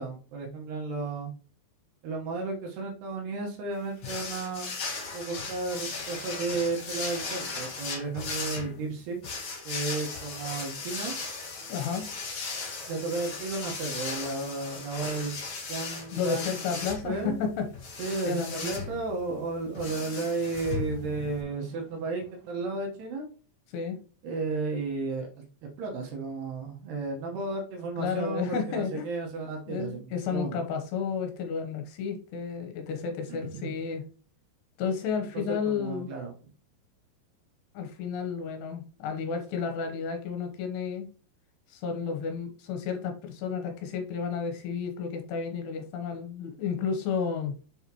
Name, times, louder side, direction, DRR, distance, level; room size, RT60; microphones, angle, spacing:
voice 1, 0.0-1.3 2.0-4.7 5.1-9.2 9.6-11.1 12.9-15.4 15.7-17.4 18.0-23.3 24.2-25.3 25.8-30.0 30.3-30.6 33.4-33.7 35.3-36.3, right 3 dB, 75° right, 0 dB, 3.2 m, -33 dB
sound 1, 4.0-21.4, left 4 dB, 50° left, 1.5 m, -37 dB
voice 2, 11.7-12.1 16.1-17.7 18.2-18.7 23.7-24.0 28.0-29.1 29.7-34.0 34.8-36.1 37.7-41.1 41.7-47.5, left 6 dB, 80° left, 4 dB, 3.0 m, -32 dB
sound 2, 17.3-23.1, right 3 dB, 55° right, 2.4 m, -53 dB
7.0 x 5.6 x 2.9 m, 0.39 s
omnidirectional pair, 4.9 m